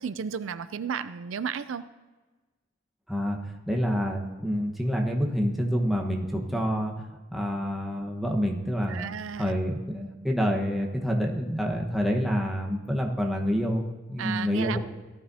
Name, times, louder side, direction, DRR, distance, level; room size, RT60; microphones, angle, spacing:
voice 1, 0.0-1.8 8.9-9.5 14.2-14.8, right 7 dB, 75° right, 13 dB, 0.4 m, -33 dB
voice 2, 3.7-6.9 7.3-9.1 9.4-14.8, equal, ahead, -1 dB, 1.2 m, -27 dB
17.5 x 12.5 x 2.8 m, 1.2 s
head